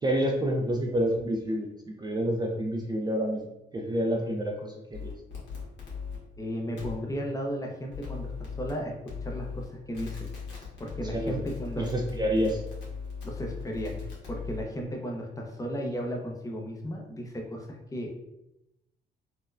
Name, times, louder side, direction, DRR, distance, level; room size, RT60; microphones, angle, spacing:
voice 1, 0.0-1.7 2.0-3.4 3.7-5.1 11.1-11.5 11.8-12.6, equal, 20° right, 0 dB, 0.4 m, -28 dB
sound 1, 4.9-6.2 6.8-6.9 7.9-8.7 9.1-9.6 9.9-14.6, left 5 dB, 65° left, 1.3 m, -38 dB
voice 2, 6.4-10.3 10.8-11.9 13.2-18.1, equal, 15° left, 1 dB, 0.6 m, -35 dB
4.1 x 2.2 x 2.5 m, 0.87 s
cardioid pair, 90°, 20 cm